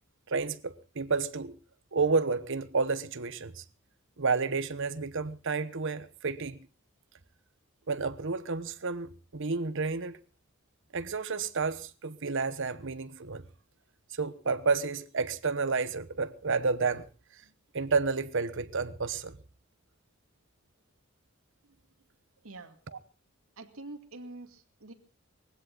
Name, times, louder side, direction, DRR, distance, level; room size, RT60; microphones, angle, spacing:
voice 1, 0.3-1.5 1.9-3.6 4.2-6.6 7.9-10.2 10.9-13.4 14.1-17.1 17.7-19.4 22.9-23.0, right 4 dB, 65° right, 1.0 m, -30 dB
voice 2, 22.4-22.8 23.6-24.9, right 2 dB, 85° right, 2.2 m, -45 dB
20.5 x 16.0 x 3.9 m
head